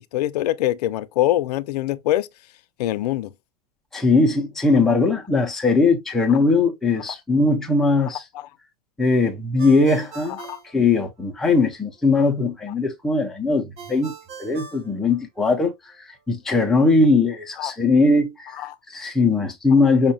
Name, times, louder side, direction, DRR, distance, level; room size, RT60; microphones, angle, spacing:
voice 1, 0.0-2.3 2.8-3.3 8.0-8.5 10.4-10.6 17.6-17.7 18.6-18.8, left 14 dB, 80° left, 0.4 m, -24 dB
voice 2, 3.9-8.2 9.0-10.4 10.7-14.1 14.4-15.7 16.0-20.1, left 3 dB, ahead, 0.3 m, -20 dB
Ringtone, 9.6-11.5 13.8-15.7, right 5 dB, 35° right, 0.6 m, -42 dB
5.3 x 2.1 x 2.7 m
supercardioid pair, 155°, 20 cm